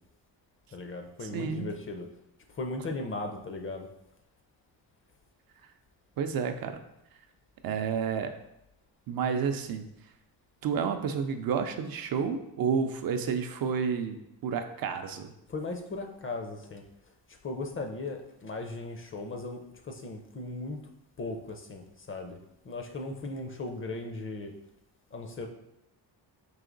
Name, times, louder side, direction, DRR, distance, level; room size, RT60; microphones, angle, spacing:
voice 1, 0.7-2.1 2.5-3.9 15.5-20.8 21.2-22.4 22.6-24.5 25.1-25.5, left 2 dB, 30° left, 4 dB, 0.6 m, -37 dB
voice 2, 1.3-1.7 6.2-6.8 7.6-8.3 9.1-9.8 10.6-15.3, right 6 dB, 55° right, 7 dB, 0.5 m, -30 dB
4.8 x 2.9 x 3.8 m, 0.83 s
cardioid pair, 105°, 41 cm